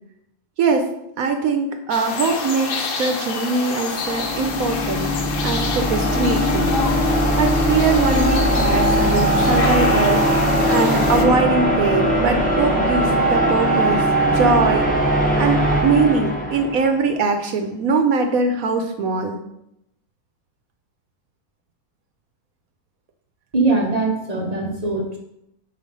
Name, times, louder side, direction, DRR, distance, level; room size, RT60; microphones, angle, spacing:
voice 1, 1.2-5.1 5.4-14.8 15.4-19.4, right 4 dB, 70° right, 6 dB, 1.0 m, -22 dB
sound 1, 1.9-11.3, left 4 dB, 60° left, 1.0 m, -28 dB
sound 2, 3.9-17.0, right 1 dB, 10° left, 0.7 m, -20 dB
voice 2, 23.5-25.2, right 3 dB, 40° right, 1 dB, 0.6 m, -21 dB
5.0 x 4.2 x 5.2 m, 0.81 s
omnidirectional pair, 1.7 m